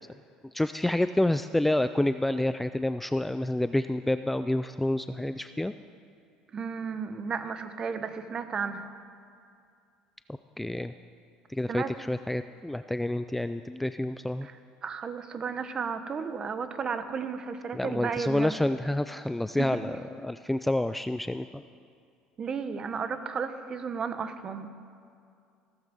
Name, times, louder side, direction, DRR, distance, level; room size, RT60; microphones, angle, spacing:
voice 1, 0.5-5.7 10.6-10.9 11.5-14.5 17.7-20.0 20.2-21.6, left 1 dB, 5° left, 11 dB, 0.3 m, -28 dB
voice 2, 6.5-8.8 11.7-11.9 14.4-18.5 19.6-19.8 22.4-24.7, right 6 dB, 35° right, 10 dB, 1.0 m, -33 dB
16.0 x 14.0 x 5.3 m, 2.3 s
cardioid pair, 120°, 2 cm